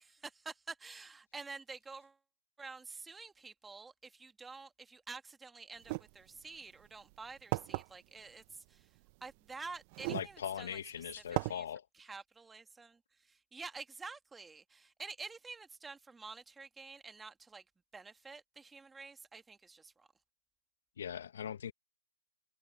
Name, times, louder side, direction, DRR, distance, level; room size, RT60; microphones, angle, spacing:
voice 1, 0.0-2.2 2.6-10.8 11.5-11.6 12.0-17.6 17.9-20.1, right 4 dB, 5° right, 1.9 m, -49 dB
sound 1, 5.8-6.0 6.9-7.0 7.5-7.8 9.1-9.2 9.9-10.3 10.8-10.9 11.4-11.5, right 24 dB, 30° right, 0.8 m, -35 dB
voice 2, 10.1-11.9 21.0-21.7, left 9 dB, 55° left, 0.9 m, -40 dB
hypercardioid pair, 150°, 0 cm